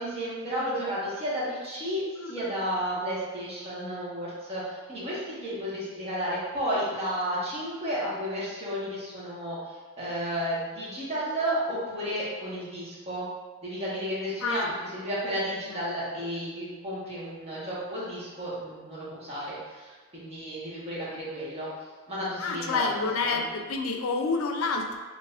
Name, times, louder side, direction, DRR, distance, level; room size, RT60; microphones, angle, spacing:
voice 1, 0.0-9.6 10.0-13.2 13.6-14.6 14.9-21.7 22.1-23.5, equal, 30° right, -8 dB, 1.2 m, -32 dB
voice 2, 2.2-2.5 14.4-14.7 15.7-15.9 22.4-25.0, left 4 dB, 90° left, 4 dB, 0.4 m, -29 dB
4.7 x 2.9 x 2.4 m, 1.4 s
head